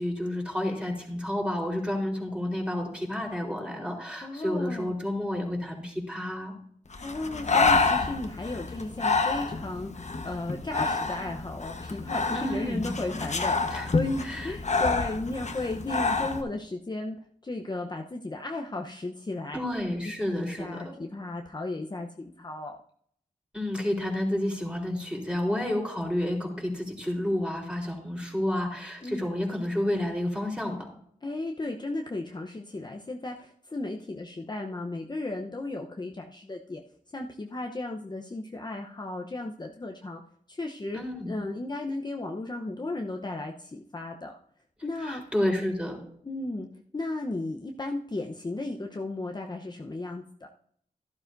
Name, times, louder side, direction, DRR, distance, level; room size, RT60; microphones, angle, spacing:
voice 1, 0.0-6.5 12.3-12.9 13.7-13.9 14.2-14.5 19.5-20.9 23.5-30.8 40.9-41.3 45.0-46.0, left 1 dB, 5° right, -1 dB, 4.1 m, -30 dB
voice 2, 4.2-5.0 7.0-19.6 20.3-22.8 29.0-29.3 31.2-36.8 37.1-40.2 40.5-44.4 44.8-45.2 46.2-46.7 46.9-50.5, left 2 dB, 30° left, 2 dB, 0.9 m, -35 dB
Breathing, 6.9-16.4, left 4 dB, 50° left, 1.2 m, -28 dB
12.0 x 12.0 x 2.7 m, 0.66 s
cardioid pair, 50°, 15 cm